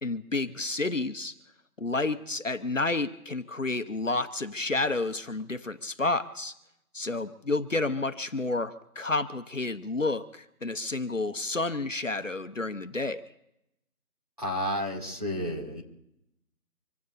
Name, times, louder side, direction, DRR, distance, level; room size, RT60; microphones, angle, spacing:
voice 1, 0.0-1.3 1.8-6.5 6.9-13.2, left 2 dB, 55° left, 9 dB, 1.0 m, -30 dB
voice 2, 14.4-15.8, equal, 25° right, -4 dB, 2.5 m, -31 dB
26.0 x 16.5 x 2.7 m, 0.81 s
figure-of-eight pair, 180°, 45 cm